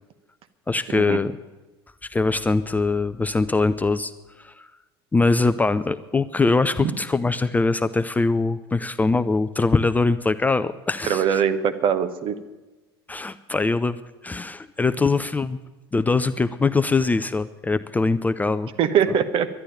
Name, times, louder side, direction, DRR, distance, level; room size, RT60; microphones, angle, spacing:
voice 1, 0.7-1.3 2.1-4.1 4.4-4.7 5.1-11.4 13.1-14.0 14.2-15.6 15.9-18.7, left 3 dB, 10° left, 12 dB, 0.5 m, -22 dB
voice 2, 11.0-12.4 18.8-19.5, right 8 dB, 40° right, 11 dB, 1.1 m, -22 dB
11.5 x 11.0 x 9.1 m, 1.1 s
figure-of-eight pair, 70°, 13 cm